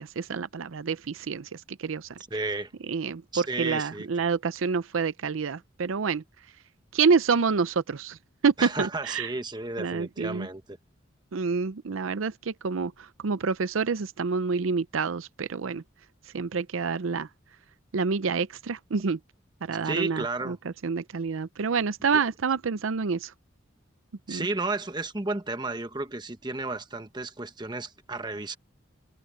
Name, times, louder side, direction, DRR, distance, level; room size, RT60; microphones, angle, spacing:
voice 1, 0.0-2.1 2.9-6.2 6.9-8.2 8.4-9.3 9.8-10.5 11.3-15.8 16.3-17.3 17.9-19.2 19.6-20.6 20.8-23.3 24.3-24.5, right 5 dB, 85° right, 0.6 m, -27 dB
voice 2, 2.3-2.7 3.3-4.2 8.6-10.8 19.8-20.6 22.1-22.2 24.3-28.6, right 3 dB, 20° right, 1.2 m, -33 dB
head